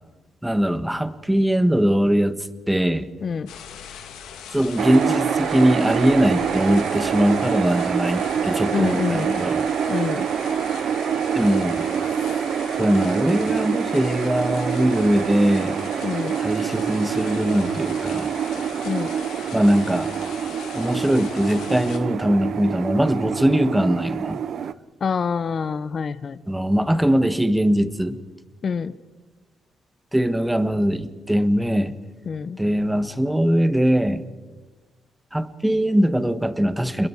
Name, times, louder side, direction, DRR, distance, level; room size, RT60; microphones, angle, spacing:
voice 1, 0.4-3.1 4.5-9.7 11.3-11.9 12.8-15.8 16.4-18.3 19.5-20.1 20.7-24.4 26.5-28.2 30.1-31.9 32.6-34.2 35.3-37.1, equal, 5° right, 11 dB, 1.3 m, -21 dB
voice 2, 3.2-3.5 8.7-9.4 9.9-10.3 16.0-16.4 18.9-19.1 25.0-26.4 28.6-28.9 32.3-32.6, left 6 dB, 45° left, 16 dB, 0.9 m, -26 dB
sound 1, 3.5-22.0, left 8 dB, 90° left, 2.6 m, -40 dB
sound 2, 4.8-24.7, right 8 dB, 60° right, 0.7 m, -26 dB
28.5 x 21.5 x 4.8 m, 1.3 s
cardioid pair, 90°, 0 cm